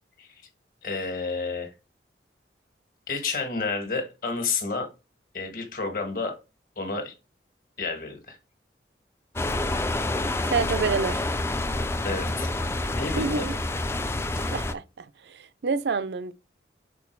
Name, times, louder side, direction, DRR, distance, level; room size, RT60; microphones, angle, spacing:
voice 1, 0.8-1.7 3.1-4.9 5.3-6.3 6.8-7.1 7.8-8.4 12.0-12.5 12.9-13.5, left 4 dB, 50° left, 1.6 m, -30 dB
sound 1, 9.4-14.7, left 2 dB, 15° left, 0.4 m, -28 dB
voice 2, 10.5-11.2 13.2-13.6 14.4-16.3, right 4 dB, 75° right, 0.5 m, -28 dB
6.1 x 3.9 x 4.5 m
head